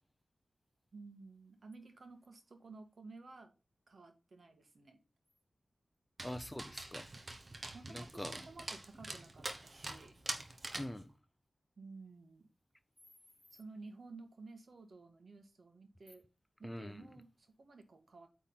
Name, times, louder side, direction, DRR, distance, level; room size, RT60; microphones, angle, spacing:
voice 1, 0.9-3.5 3.9-5.0 7.7-10.1 11.8-12.5 13.5-16.2 16.6-18.3, right 3 dB, 55° right, 1.6 m, -54 dB
voice 2, 6.2-7.1 7.9-8.3 10.7-11.1 16.6-17.1, left 1 dB, 10° left, 0.6 m, -44 dB
Dog, 6.2-11.0, right 2 dB, 40° right, 1.1 m, -45 dB
8.7 x 3.7 x 5.5 m
wide cardioid pair, 110°, 0 cm